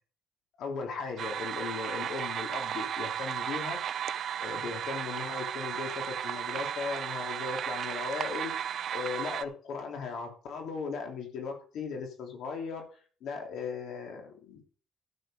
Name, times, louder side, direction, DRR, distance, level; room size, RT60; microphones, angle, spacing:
voice 1, 0.6-3.8 4.4-12.9 13.2-14.6, left 5 dB, 80° left, 3 dB, 3.2 m, -37 dB
sound 1, 1.2-9.5, right 9 dB, 60° right, 0.6 m, -34 dB
12.5 x 6.7 x 5.1 m, 0.40 s
cardioid pair, 145°, 0 cm